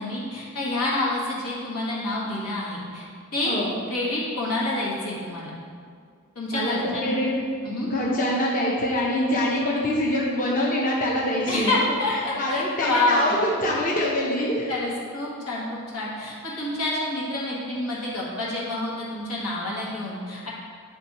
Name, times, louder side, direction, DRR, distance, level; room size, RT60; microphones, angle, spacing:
voice 1, 0.0-3.0 3.3-3.5 3.9-5.5 6.4-7.1 7.6-7.9 11.5-13.4 14.7-20.5, left 2 dB, 90° left, -6 dB, 1.8 m, -28 dB
voice 2, 6.4-7.3 7.9-11.8 12.1-14.7, left 1 dB, 40° left, -4 dB, 0.8 m, -25 dB
9.4 x 3.4 x 4.2 m, 2.2 s
head